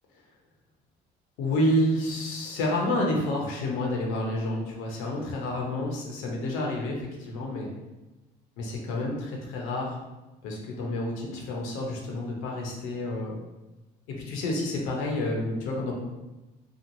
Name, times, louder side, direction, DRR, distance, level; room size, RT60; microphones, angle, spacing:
voice 1, 1.4-7.7 8.6-9.9 10.4-13.4 14.1-15.9, left 1 dB, 75° left, 0 dB, 0.8 m, -29 dB
3.0 x 2.4 x 2.6 m, 1.1 s
supercardioid pair, 75°, 21 cm